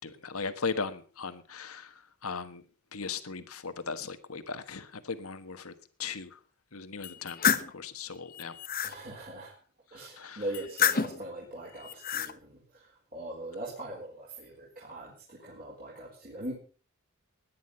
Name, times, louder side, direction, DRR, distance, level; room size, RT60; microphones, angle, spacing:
voice 1, 0.0-1.8 2.2-2.6 2.9-5.7 6.0-6.3 6.7-7.4 7.7-8.5 10.2-10.4, left 5 dB, 75° left, 10 dB, 1.4 m, -37 dB
sound 1, 7.0-7.7 8.3-8.9 10.5-11.2 11.8-12.3, left 8 dB, 40° left, 1.0 m, -28 dB
voice 2, 8.8-9.5 9.9-16.5, right 1 dB, 40° right, -4 dB, 4.4 m, -41 dB
17.5 x 10.5 x 5.5 m, 0.38 s
head